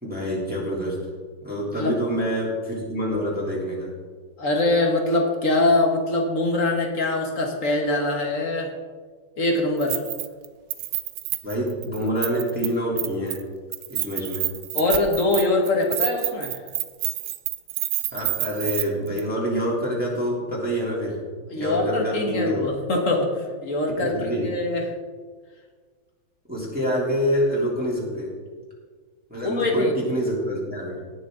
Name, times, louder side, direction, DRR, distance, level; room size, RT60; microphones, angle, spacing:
voice 1, 0.0-1.0 1.4-3.9 11.4-13.4 13.9-14.5 18.1-21.2 21.5-22.6 24.0-24.5 26.5-28.3 29.3-31.0, equal, 5° right, -6 dB, 3.1 m, -26 dB
voice 2, 4.4-8.7 9.4-10.0 14.7-16.6 21.5-24.9 29.4-29.9, left 2 dB, 40° left, 2 dB, 1.7 m, -23 dB
Keys jangling, 9.8-10.5 10.7-12.7 13.0-13.4 13.7-18.8 19.2-19.3, right 14 dB, 75° right, 1.2 m, -28 dB
19.0 x 6.7 x 3.9 m, 1.5 s
omnidirectional pair, 2.2 m